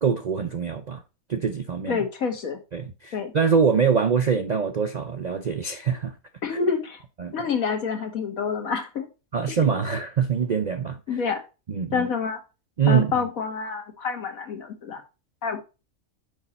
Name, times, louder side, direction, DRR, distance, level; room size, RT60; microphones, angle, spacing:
voice 1, 0.0-1.0 1.3-2.0 2.7-6.1 7.2-7.3 9.3-11.0 11.7-12.0 12.8-13.1, right 6 dB, 55° right, 0.4 m, -24 dB
voice 2, 1.9-2.6 3.1-3.3 6.4-7.0 7.3-9.1 9.5-9.6 11.1-11.4 11.9-12.4 12.9-15.0 15.4-15.6, left 5 dB, 75° left, 1.8 m, -27 dB
6.4 x 5.0 x 4.1 m
omnidirectional pair, 1.5 m